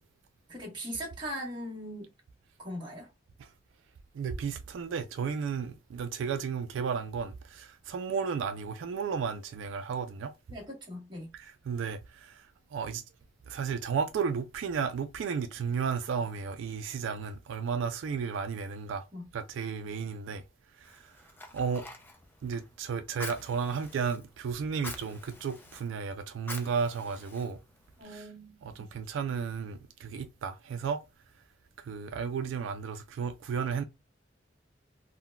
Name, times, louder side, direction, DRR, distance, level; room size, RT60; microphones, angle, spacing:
voice 1, 0.5-2.1 2.6-3.1 10.5-11.3 19.1-19.3 28.0-28.9, equal, 25° right, 1.3 m, -40 dB
voice 2, 4.1-10.3 11.3-13.0 13.5-19.1 19.3-20.4 20.8-21.1 21.5-21.9 22.4-27.6 28.0-28.3 28.6-31.0 31.8-33.8, right 6 dB, 85° right, 0.3 m, -33 dB
Fire, 20.8-28.0, left 2 dB, 10° left, 0.5 m, -47 dB
3.8 x 2.1 x 2.2 m
head